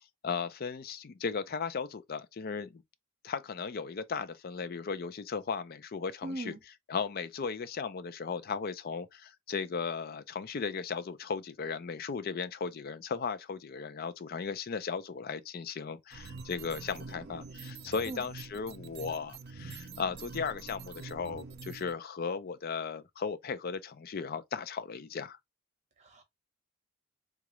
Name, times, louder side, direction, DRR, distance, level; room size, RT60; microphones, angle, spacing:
voice 1, 0.2-2.8 3.2-6.6 6.9-25.4, left 5 dB, 50° left, 0.4 m, -36 dB
voice 2, 6.2-6.6 18.1-18.2 26.0-26.2, right 2 dB, 35° right, 0.9 m, -39 dB
sound 1, 16.1-21.9, right 4 dB, 50° right, 0.5 m, -45 dB
3.8 x 2.4 x 3.0 m
head